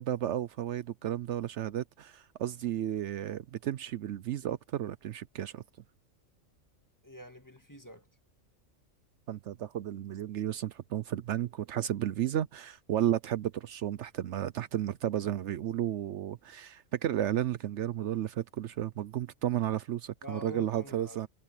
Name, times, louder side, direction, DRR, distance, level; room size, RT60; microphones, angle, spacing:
voice 1, 0.0-5.6 9.3-21.3, right 11 dB, 70° right, 0.9 m, -33 dB
voice 2, 7.0-8.1 20.2-21.2, equal, 15° left, 2.0 m, -45 dB
omnidirectional pair, 1.3 m